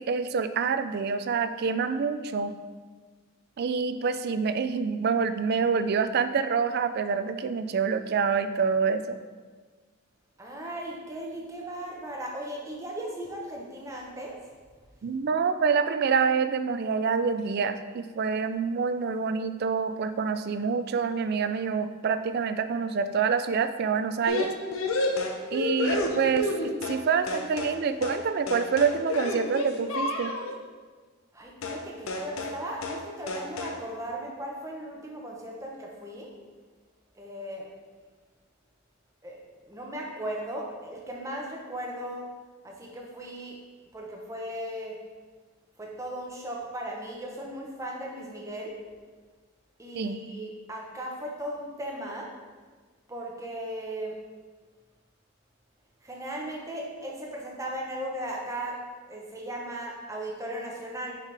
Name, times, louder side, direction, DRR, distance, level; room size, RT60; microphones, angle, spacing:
voice 1, 0.1-2.5 3.6-9.2 15.0-24.5 25.5-30.3 49.9-50.2, right 5 dB, 50° right, 10 dB, 0.3 m, -27 dB
voice 2, 10.4-14.4 31.3-36.3 37.2-37.7 39.2-39.4 39.7-42.3 42.6-43.6 43.9-45.0 45.8-48.7 49.8-52.3 53.1-54.1 56.0-58.8 59.1-61.1, right 1 dB, 15° right, -1 dB, 0.9 m, -37 dB
sound 1, 24.3-27.0 27.3-27.8 28.0-28.2 28.5-30.6 31.6-32.6 32.8-33.0 33.3-33.8, left 2 dB, 80° left, 0.7 m, -30 dB
6.5 x 5.0 x 3.3 m, 1.4 s
head